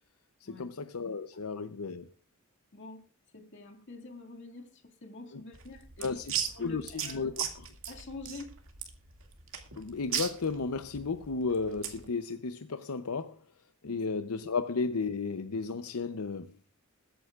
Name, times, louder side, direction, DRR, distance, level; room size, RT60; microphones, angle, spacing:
voice 1, 0.4-2.1 6.0-6.3 6.6-7.7 9.8-13.4 13.8-16.5, left 4 dB, 85° left, 0.7 m, -34 dB
voice 2, 2.7-3.0 3.3-6.2 6.5-7.4 7.9-8.5 13.8-14.0, left 3 dB, 55° left, 2.2 m, -46 dB
sound 1, 5.5-12.1, right 9 dB, 65° right, 2.2 m, -37 dB
21.5 x 9.2 x 2.4 m
head